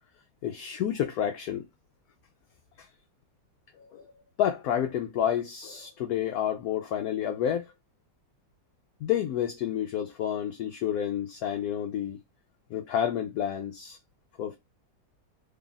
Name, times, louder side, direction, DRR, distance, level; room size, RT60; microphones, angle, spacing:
voice 1, 0.4-1.6 2.8-2.9 3.8-4.1 4.4-7.7 9.0-12.2 12.7-14.0 14.4-14.6, left 10 dB, 75° left, 0.9 m, -29 dB
3.5 x 2.3 x 3.8 m
omnidirectional pair, 2.0 m